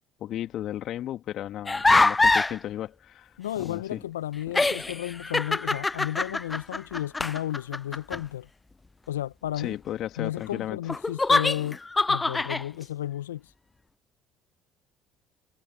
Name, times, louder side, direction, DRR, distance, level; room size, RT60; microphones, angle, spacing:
voice 1, 0.2-3.3 3.6-4.0 9.6-10.8, left 12 dB, 55° left, 2.7 m, -34 dB
sound 1, 1.7-2.6 4.0-4.1 4.5-8.2 10.9-12.6, left 3 dB, 20° left, 0.3 m, -24 dB
voice 2, 3.4-8.5 9.1-9.8 10.2-13.5, left 12 dB, 80° left, 0.8 m, -33 dB
hypercardioid pair, 55°, 0 cm